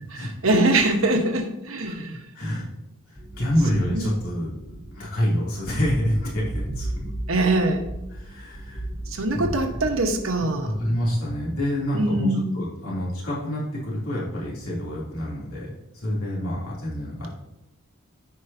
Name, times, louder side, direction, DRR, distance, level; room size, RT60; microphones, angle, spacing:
voice 1, 0.2-2.2 3.9-4.1 7.3-7.8 9.1-10.7 11.9-12.5, right 2 dB, 70° right, 4 dB, 1.1 m, -23 dB
voice 2, 2.3-2.7 3.1-6.9 8.1-8.8 9.3-9.5 10.6-17.3, equal, 80° left, -6 dB, 3.0 m, -27 dB
sound 1, 3.2-11.1 11.8-12.1, right 1 dB, 25° left, 1.4 m, -36 dB
14.0 x 4.8 x 2.8 m, 0.88 s
head